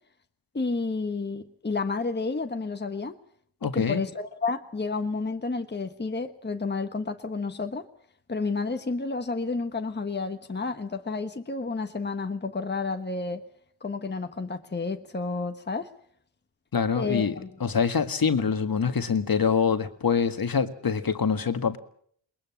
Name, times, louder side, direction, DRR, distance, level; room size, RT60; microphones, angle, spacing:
voice 1, 0.5-3.2 3.6-7.9 8.3-13.4 13.8-15.9 16.9-17.5, left 3 dB, 20° left, 1.4 m, -31 dB
voice 2, 3.6-4.0 16.7-21.8, left 6 dB, 50° left, 1.8 m, -25 dB
21.5 x 21.0 x 7.2 m
cardioid pair, 50°, 46 cm